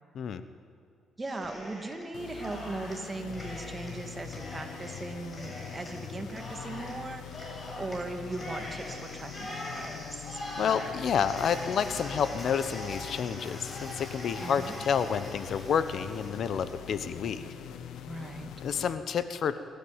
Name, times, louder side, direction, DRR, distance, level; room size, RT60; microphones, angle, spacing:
Cheering, 1.2-2.1 2.4-16.8, left 1 dB, 25° left, 7.4 m, -43 dB
voice 1, 1.2-10.4 14.4-14.7 18.1-18.5, right 2 dB, 20° right, 5 dB, 2.6 m, -39 dB
sound 1, 2.1-19.0, left 8 dB, 80° left, 1.3 m, -43 dB
voice 2, 10.6-17.4 18.6-19.6, left 7 dB, 60° left, 12 dB, 1.1 m, -29 dB
26.5 x 13.5 x 9.0 m, 2.5 s
cardioid pair, 90°, 0 cm